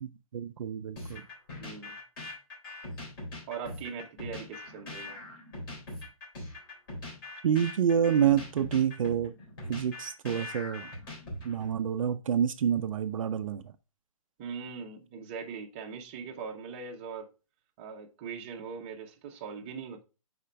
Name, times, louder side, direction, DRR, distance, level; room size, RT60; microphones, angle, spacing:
voice 1, 0.0-1.2 7.4-9.3 9.7-10.9 11.4-13.7, right 8 dB, 65° right, 0.5 m, -28 dB
sound 1, 1.0-11.7, left 2 dB, 40° left, 3.9 m, -42 dB
voice 2, 1.6-2.0 3.5-5.2 14.4-17.3 17.8-20.0, right 6 dB, 20° right, 0.7 m, -41 dB
5.6 x 4.3 x 5.0 m
hypercardioid pair, 170°, 19 cm